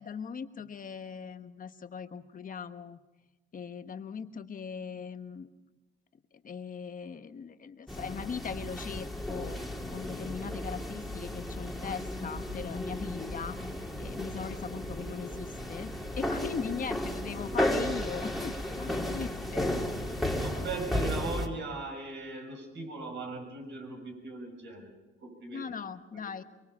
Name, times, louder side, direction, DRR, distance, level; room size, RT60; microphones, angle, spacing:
voice 1, 0.0-3.0 3.5-5.5 6.4-9.6 9.9-13.6 14.0-19.8 25.5-26.4, left 6 dB, 45° left, 9 dB, 1.3 m, -39 dB
sound 1, 7.9-21.5, left 1 dB, ahead, 2.9 m, -34 dB
voice 2, 20.3-25.7 26.1-26.3, right 3 dB, 65° right, 2 dB, 6.8 m, -39 dB
24.0 x 23.5 x 5.6 m, 1.1 s
cardioid pair, 90°, 20 cm